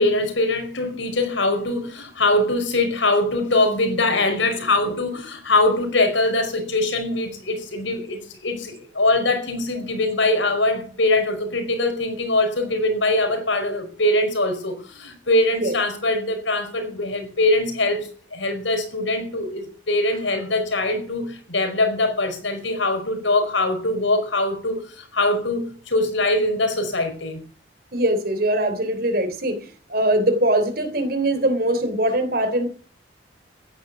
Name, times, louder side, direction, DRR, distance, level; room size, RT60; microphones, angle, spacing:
voice 1, 0.0-27.4, left 2 dB, 85° left, 5.2 m, -22 dB
voice 2, 27.9-32.7, right 1 dB, 50° right, 3.4 m, -22 dB
15.0 x 10.5 x 8.1 m
head